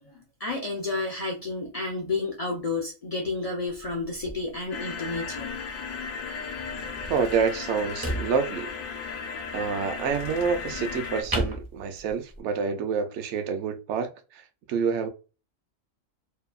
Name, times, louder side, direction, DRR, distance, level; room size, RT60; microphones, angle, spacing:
voice 1, 0.4-5.5, left 3 dB, 70° left, 0.3 m, -31 dB
sound 1, 3.7-12.4, right 1 dB, 30° right, 0.4 m, -38 dB
sound 2, 4.7-11.2, left 5 dB, 85° left, 1.0 m, -35 dB
voice 2, 7.1-8.7 9.5-14.4 14.7-15.1, right 6 dB, 65° right, 0.8 m, -27 dB
2.7 x 2.2 x 2.3 m
omnidirectional pair, 1.4 m